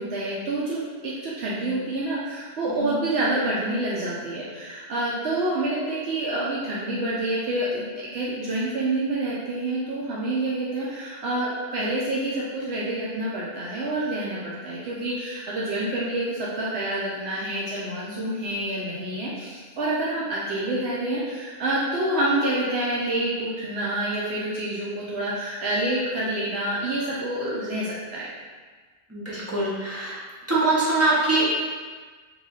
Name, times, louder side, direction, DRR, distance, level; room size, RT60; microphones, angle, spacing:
voice 1, 0.0-28.3, right 1 dB, 75° right, -7 dB, 0.9 m, -27 dB
voice 2, 29.1-30.2 30.5-31.5, right 2 dB, 15° right, -9 dB, 0.6 m, -23 dB
3.0 x 2.3 x 3.8 m, 1.4 s
omnidirectional pair, 1.1 m